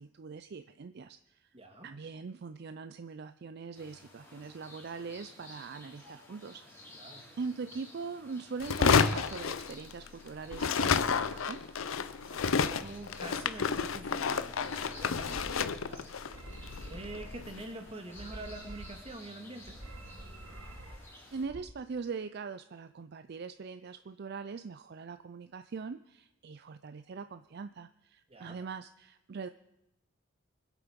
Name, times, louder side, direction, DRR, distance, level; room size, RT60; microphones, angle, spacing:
voice 1, 0.0-1.6 1.8-6.8 7.4-11.6 21.3-29.5, right 5 dB, 55° right, 10 dB, 0.4 m, -42 dB
voice 2, 1.5-1.9 6.9-7.3 12.1-16.2 16.5-19.8 28.3-28.6, right 2 dB, 30° right, 4 dB, 2.0 m, -46 dB
sound 1, 3.7-21.4, left 1 dB, 15° left, 3.6 m, -54 dB
sound 2, 8.6-10.2 10.5-17.7, left 5 dB, 80° left, 0.6 m, -30 dB
sound 3, 14.9-15.8 16.1-17.5 18.0-19.2 19.6-21.0 21.3-21.6, right 1 dB, 80° right, 1.7 m, -47 dB
24.5 x 8.3 x 5.2 m, 0.88 s
head